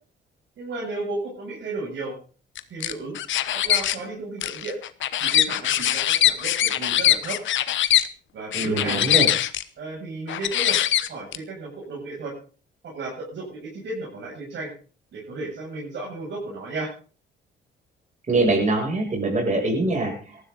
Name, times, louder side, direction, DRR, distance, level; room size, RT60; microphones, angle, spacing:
voice 1, 0.6-2.1 2.7-3.2 3.5-4.8 5.2-7.4 8.3-9.1 9.8-10.8 11.1-12.3 12.8-14.7 15.1-16.9, right 3 dB, 65° right, -4 dB, 7.7 m, -33 dB
sound 1, 2.6-4.0 4.4-8.1 8.5-9.6 10.3-11.4, left 12 dB, 70° left, 1.1 m, -22 dB
voice 2, 8.5-9.3 18.3-20.5, right 2 dB, 35° right, 1 dB, 7.6 m, -23 dB
18.5 x 14.0 x 4.1 m, 0.39 s
cardioid pair, 90°, 20 cm